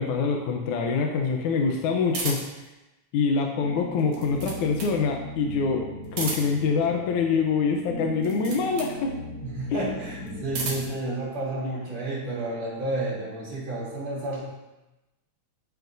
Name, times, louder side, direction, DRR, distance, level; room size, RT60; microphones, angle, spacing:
voice 1, 0.0-2.6 3.1-9.1 9.7-9.9, left 5 dB, 80° left, 2 dB, 2.3 m, -25 dB
sound 1, 2.1-2.7 3.9-5.0 6.0-6.7 8.2-9.0 10.2-11.0, right 3 dB, 80° right, 3.5 m, -34 dB
sound 2, 3.6-10.8, equal, 45° left, 3.0 m, -39 dB
voice 2, 9.4-14.4, right 2 dB, 60° right, -6 dB, 4.4 m, -31 dB
14.0 x 9.2 x 2.7 m, 1.0 s
omnidirectional pair, 3.4 m